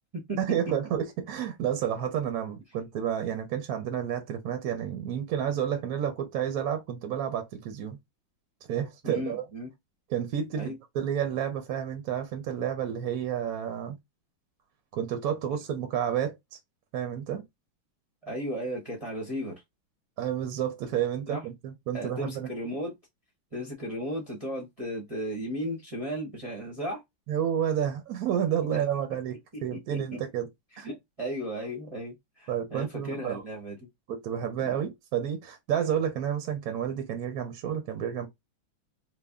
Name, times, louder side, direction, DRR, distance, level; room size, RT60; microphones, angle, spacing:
voice 1, 0.4-8.0 8.7-9.4 10.1-14.0 14.9-16.6 16.9-17.4 20.2-22.5 27.3-30.5 30.8-30.9 32.5-33.4 34.1-38.3, right 9 dB, 70° right, 0.9 m, -30 dB
voice 2, 9.0-9.7 10.6-10.8 18.2-19.6 21.3-21.4 21.9-22.9 23.5-27.0 28.7-28.8 29.9-30.2 30.8-33.8 34.6-34.8, equal, 40° right, 0.5 m, -35 dB
3.3 x 2.1 x 3.5 m
omnidirectional pair, 2.2 m